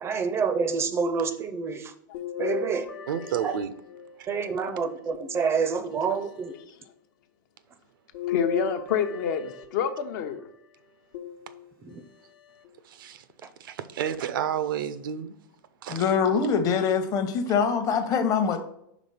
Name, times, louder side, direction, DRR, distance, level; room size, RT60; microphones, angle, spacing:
voice 1, 0.0-1.8 2.4-2.9 3.4-3.5 4.3-6.5, right 5 dB, 25° right, 0.5 m, -27 dB
sound 1, 2.1-4.4 5.1-6.1 8.1-10.2 11.1-12.0 12.6-12.7 14.1-14.2, left 6 dB, 85° left, 1.0 m, -37 dB
voice 2, 3.1-3.7 4.2-4.3 12.8-13.2 13.6-15.3 15.8-16.1, right 9 dB, 75° right, 0.5 m, -31 dB
voice 3, 8.3-10.5, left 7 dB, 60° left, 0.7 m, -28 dB
voice 4, 15.9-18.6, left 6 dB, 30° left, 0.8 m, -24 dB
5.1 x 3.5 x 5.5 m
hypercardioid pair, 125°, 11 cm